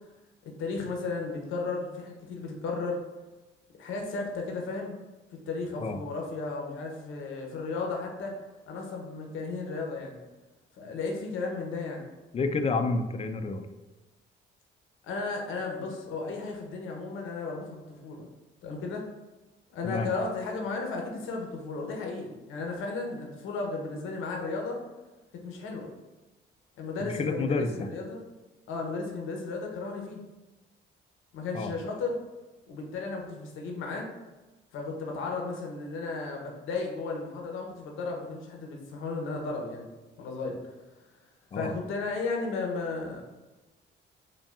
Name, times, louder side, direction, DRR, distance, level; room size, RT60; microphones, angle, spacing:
voice 1, 0.6-3.0 3.8-5.0 5.5-8.4 8.7-10.2 10.8-12.1 12.8-12.9 15.0-18.3 18.6-19.0 19.7-24.8 25.4-25.9 26.8-28.2 28.7-30.2 31.3-32.2 32.7-34.1 34.7-39.8 40.2-40.6 41.5-43.2, left 3 dB, 85° left, 1 dB, 0.8 m, -34 dB
voice 2, 12.3-13.6 19.8-20.1 27.0-27.9 31.5-31.7 41.5-41.7, left 3 dB, 30° left, 8 dB, 0.4 m, -29 dB
5.2 x 2.2 x 2.4 m, 1.1 s
cardioid pair, 90°, 20 cm